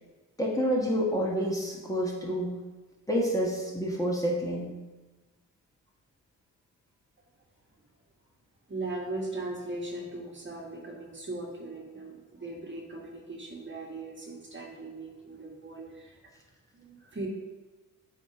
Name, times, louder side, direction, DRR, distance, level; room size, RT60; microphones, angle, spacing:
voice 1, 0.4-2.6 3.1-4.7, equal, 10° left, -3 dB, 1.4 m, -28 dB
voice 2, 8.7-16.2 16.7-17.3, right 2 dB, 30° right, -1 dB, 1.5 m, -39 dB
7.0 x 2.9 x 4.8 m, 1.2 s
supercardioid pair, 50°, 35 cm